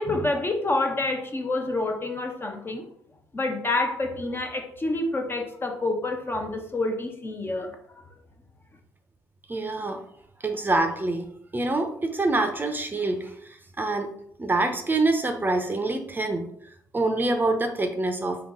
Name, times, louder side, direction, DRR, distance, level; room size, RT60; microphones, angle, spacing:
voice 1, 0.0-2.8 3.3-7.7, left 2 dB, 30° left, 4 dB, 0.7 m, -28 dB
voice 2, 9.5-10.0 10.4-11.3 11.5-14.1 14.4-16.5 16.9-18.4, right 2 dB, 25° right, 5 dB, 0.6 m, -26 dB
3.7 x 2.3 x 3.6 m, 0.68 s
supercardioid pair, 55°, 8 cm